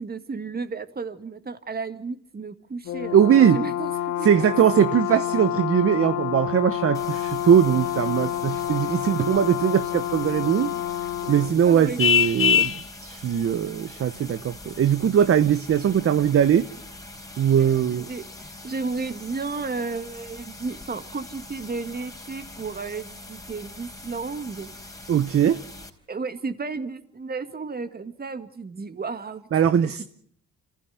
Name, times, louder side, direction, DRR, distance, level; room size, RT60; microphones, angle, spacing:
voice 1, 0.0-4.3 4.9-5.0 11.6-12.0 17.6-24.7 26.1-29.5 29.8-30.0, right 4 dB, 30° right, 2.1 m, -33 dB
Brass instrument, 2.9-11.6, left 12 dB, 70° left, 1.1 m, -29 dB
voice 2, 3.1-3.6 4.2-10.7 11.3-12.7 13.0-16.7 17.4-18.1 25.1-25.6 29.5-30.0, right 9 dB, 50° right, 0.9 m, -20 dB
sound 1, 6.9-25.9, left 2 dB, 10° left, 4.2 m, -43 dB
Vehicle horn car horn honking, 12.0-12.8, left 8 dB, 45° left, 0.9 m, -19 dB
26.5 x 15.5 x 9.4 m
cardioid pair, 90°, 30 cm